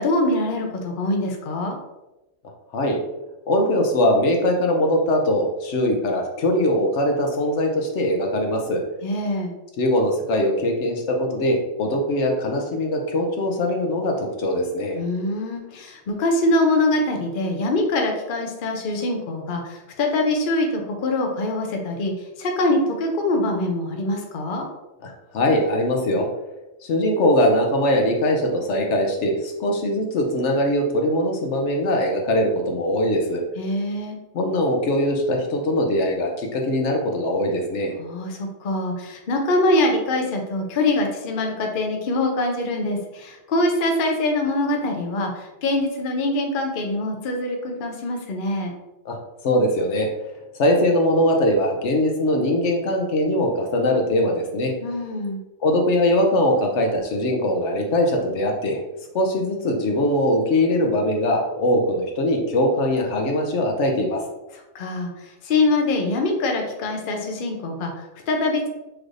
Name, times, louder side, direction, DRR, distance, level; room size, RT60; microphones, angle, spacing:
voice 1, 0.0-1.8 9.0-9.5 15.0-24.7 33.6-34.2 38.0-48.7 54.8-55.4 64.5-68.7, left 2 dB, 50° left, 2 dB, 0.8 m, -24 dB
voice 2, 3.5-8.8 9.8-15.0 25.0-26.3 26.8-33.4 34.3-37.9 49.0-49.2 49.4-50.1 50.6-54.7 55.6-58.8 59.1-64.2, left 1 dB, 70° left, 2 dB, 1.0 m, -21 dB
6.2 x 3.2 x 2.5 m, 0.99 s
omnidirectional pair, 1.3 m